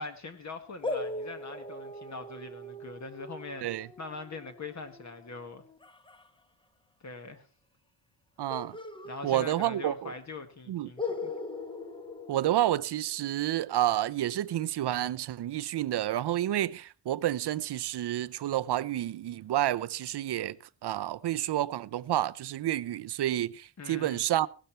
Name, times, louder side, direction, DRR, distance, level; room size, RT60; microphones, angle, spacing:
voice 1, 0.0-5.6 7.0-7.5 9.0-11.3 23.8-24.2, left 3 dB, 35° left, 1.5 m, -42 dB
sound 1, 0.8-6.3 8.5-10.0 10.2-10.3 11.0-13.2, left 2 dB, 10° left, 1.1 m, -40 dB
voice 2, 8.4-8.8 9.2-10.1 10.7-10.9 12.3-20.6 20.8-24.5, right 13 dB, 60° right, 0.7 m, -29 dB
16.5 x 12.5 x 4.4 m
wide cardioid pair, 170°, 45 cm